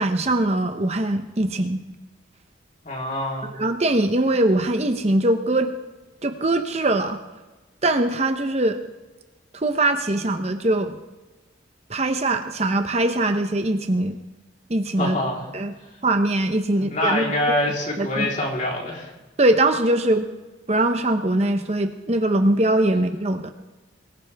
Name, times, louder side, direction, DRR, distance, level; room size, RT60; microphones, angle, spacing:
voice 1, 0.0-1.8 3.6-5.7 6.2-7.2 7.8-8.8 9.5-11.0 11.9-14.2 14.7-15.2 15.5-15.7 16.0-17.6 18.0-18.3 19.4-20.3 20.7-23.5, right 1 dB, 35° right, 7 dB, 0.8 m, -22 dB
voice 2, 2.8-3.5 15.0-15.4 16.7-19.1, left 1 dB, 40° left, -2 dB, 3.7 m, -25 dB
23.0 x 15.5 x 3.5 m, 1.2 s
head